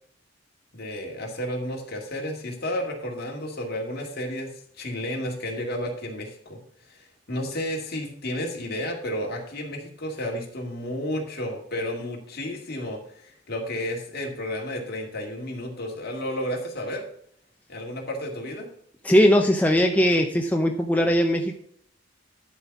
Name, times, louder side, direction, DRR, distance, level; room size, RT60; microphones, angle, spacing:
voice 1, 0.7-6.6 6.9-17.0 17.7-18.7, left 1 dB, 55° left, 0 dB, 2.1 m, -32 dB
voice 2, 19.0-21.6, equal, 10° left, 2 dB, 0.6 m, -20 dB
11.5 x 4.1 x 5.9 m, 0.65 s
head